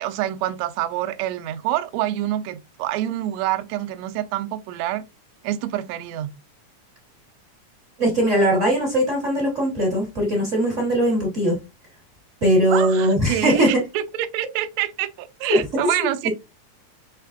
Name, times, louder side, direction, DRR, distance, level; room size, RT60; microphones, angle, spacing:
voice 1, 0.0-5.0 5.4-6.3 12.7-16.3, right 13 dB, 80° right, 1.6 m, -27 dB
voice 2, 8.0-11.6 12.4-13.7 15.5-16.3, equal, 60° right, 0.7 m, -20 dB
5.7 x 3.3 x 2.4 m
omnidirectional pair, 3.6 m